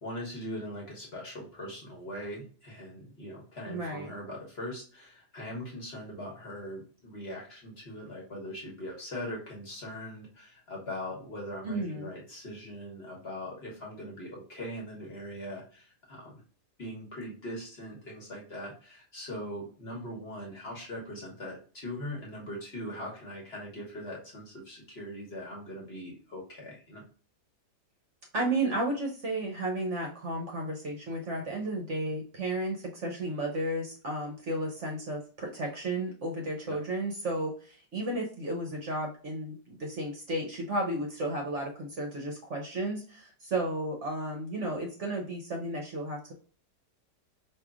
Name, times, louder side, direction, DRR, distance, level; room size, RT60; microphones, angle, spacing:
voice 1, 0.0-16.4 16.8-27.0 36.6-36.8, equal, 45° left, -2 dB, 1.2 m, -41 dB
voice 2, 3.7-4.1 11.6-12.1 28.3-46.3, right 1 dB, 55° right, 1 dB, 1.0 m, -33 dB
4.6 x 2.8 x 2.4 m, 0.41 s
omnidirectional pair, 1.8 m